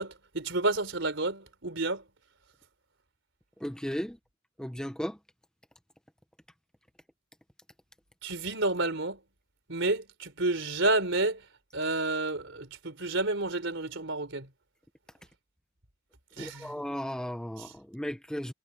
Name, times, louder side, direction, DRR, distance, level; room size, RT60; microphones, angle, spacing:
voice 1, 0.0-2.0 8.2-9.2 9.7-11.4 11.7-14.5 16.4-16.8 17.6-17.7, right 2 dB, 65° right, 4.2 m, -30 dB
voice 2, 3.6-4.2 4.6-5.2 16.4-18.5, equal, 5° left, 1.0 m, -35 dB
head